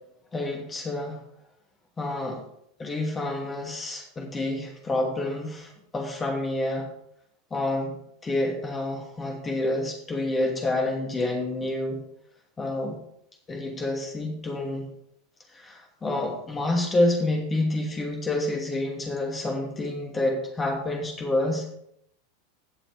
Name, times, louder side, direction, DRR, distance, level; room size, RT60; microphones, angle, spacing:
voice 1, 0.3-1.2 2.0-2.4 2.8-6.9 7.5-7.9 8.2-12.0 12.6-13.0 13.5-14.9 15.5-21.7, left 2 dB, 20° left, 2 dB, 2.7 m, -28 dB
16.5 x 7.0 x 3.5 m, 0.73 s
figure-of-eight pair, 85°, 0 cm